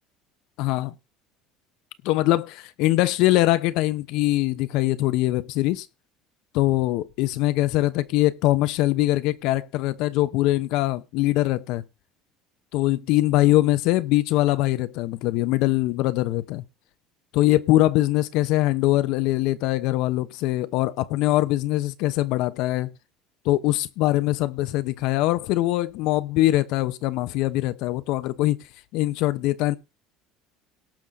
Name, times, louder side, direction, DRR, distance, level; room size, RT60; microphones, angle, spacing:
voice 1, 0.6-0.9 2.0-5.9 6.5-11.8 12.7-16.6 17.3-22.9 23.4-28.6 28.9-29.8, left 16 dB, 70° left, 0.9 m, -22 dB
18.0 x 6.2 x 4.0 m
cardioid pair, 125°, 0 cm